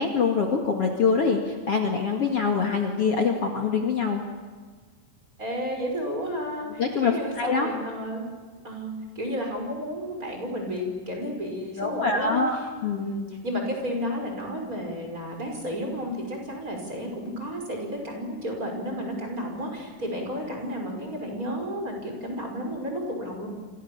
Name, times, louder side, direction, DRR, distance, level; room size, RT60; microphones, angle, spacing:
voice 1, 0.0-4.2 6.8-7.7 11.8-13.1, left 5 dB, 45° left, 2 dB, 2.8 m, -24 dB
voice 2, 5.4-8.2 8.6-12.4 12.9-23.5, equal, 25° right, 2 dB, 6.2 m, -32 dB
29.5 x 26.5 x 7.2 m, 1.5 s
omnidirectional pair, 4.0 m